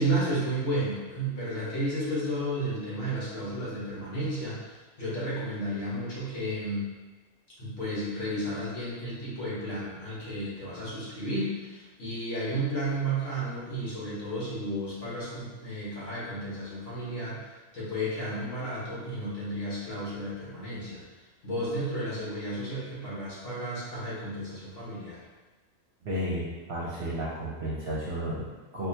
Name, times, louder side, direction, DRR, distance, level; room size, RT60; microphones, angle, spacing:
voice 1, 0.0-6.8 7.6-17.4 17.7-21.0 21.4-25.2, right 1 dB, 60° left, -9 dB, 1.6 m, -32 dB
voice 2, 26.0-28.9, equal, 55° right, -6 dB, 0.8 m, -33 dB
4.7 x 2.3 x 2.8 m, 1.3 s
omnidirectional pair, 1.4 m